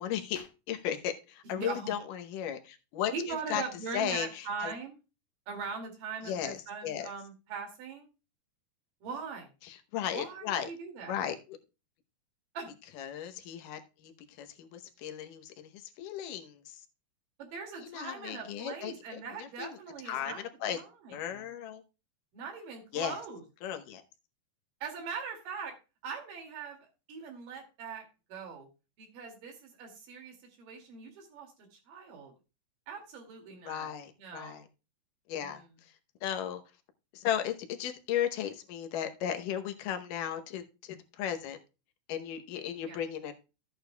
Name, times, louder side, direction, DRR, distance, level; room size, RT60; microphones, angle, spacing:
voice 1, 0.0-3.6 3.9-4.7 6.2-6.6 6.8-7.1 9.6-10.7 11.1-11.6 13.0-16.8 17.8-19.8 20.1-20.8 21.1-21.8 22.9-23.2 23.6-24.0 33.6-34.6 35.3-35.9 36.2-36.6 37.1-41.6 42.1-43.3, left 10 dB, 80° left, 7 dB, 2.5 m, -36 dB
voice 2, 1.4-1.9 3.1-5.0 5.5-8.1 9.0-9.5 10.1-11.2 12.5-12.7 17.4-20.4 20.7-21.4 22.3-23.4 24.8-25.7 26.0-28.7 29.0-32.3 32.9-33.9 34.2-34.6 35.4-35.7 42.9-43.0, right 5 dB, 80° right, 3 dB, 4.0 m, -41 dB
13.5 x 8.7 x 2.2 m, 0.30 s
omnidirectional pair, 3.8 m